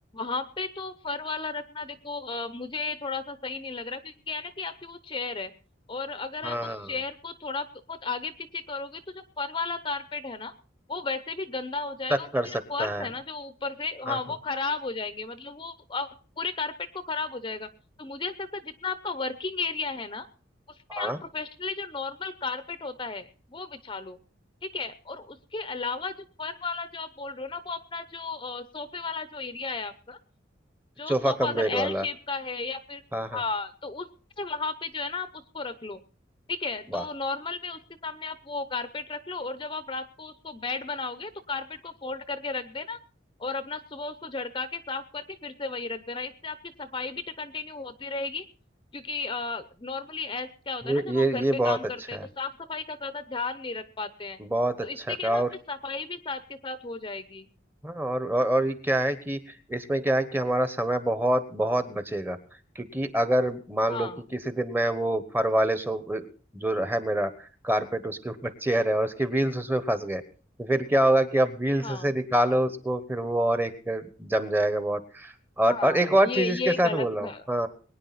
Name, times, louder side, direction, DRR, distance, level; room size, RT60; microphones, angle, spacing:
voice 1, 0.1-5.5 5.9-10.5 10.9-16.1 16.4-17.7 18.0-20.3 20.9-24.2 24.6-26.1 26.4-30.2 31.0-33.0 33.3-34.1 34.4-36.0 36.5-43.0 43.4-48.4 48.9-54.4 54.8-57.5 63.9-64.2 71.8-72.1 75.6-77.4, left 4 dB, 25° left, 12 dB, 0.7 m, -34 dB
voice 2, 6.4-6.9 12.1-12.5 12.8-13.1 14.1-14.2 20.9-21.2 31.1-32.0 33.1-33.4 36.9-37.0 50.8-51.8 52.1-52.2 54.4-55.5 57.8-59.4 59.7-62.4 62.7-66.3 66.5-67.3 67.6-70.2 70.6-77.7, right 1 dB, 10° right, 11 dB, 1.0 m, -26 dB
22.0 x 9.9 x 4.1 m, 0.39 s
head